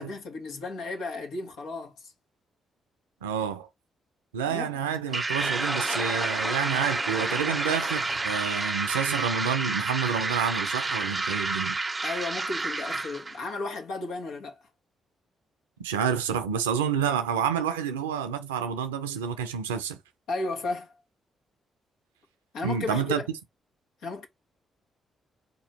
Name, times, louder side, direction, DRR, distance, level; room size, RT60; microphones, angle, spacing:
voice 1, 0.0-2.1 4.5-4.7 12.0-14.7 20.3-20.9 22.5-23.3 24.0-24.3, left 3 dB, 70° left, 1.3 m, -34 dB
voice 2, 3.2-3.7 4.3-11.8 15.8-20.0 22.6-23.2, right 7 dB, 85° right, 0.6 m, -29 dB
sound 1, 5.1-13.4, right 3 dB, 30° right, 0.4 m, -30 dB
sound 2, 5.4-9.1, left 2 dB, 25° left, 0.7 m, -38 dB
4.2 x 3.0 x 4.1 m
hypercardioid pair, 40°, 0 cm